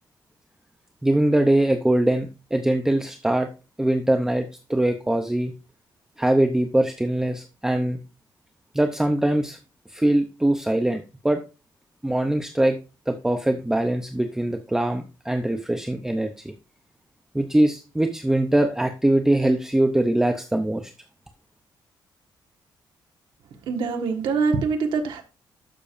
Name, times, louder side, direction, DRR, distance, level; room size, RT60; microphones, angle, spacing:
voice 1, 1.0-3.5 3.8-5.5 6.2-8.0 8.7-9.6 9.9-11.4 12.0-12.8 13.1-16.5 17.3-20.9, right 1 dB, 5° right, 5 dB, 0.6 m, -22 dB
voice 2, 23.7-25.2, right 5 dB, 90° right, 4 dB, 1.5 m, -24 dB
12.0 x 6.8 x 2.6 m, 0.31 s
cardioid pair, 160°, 8 cm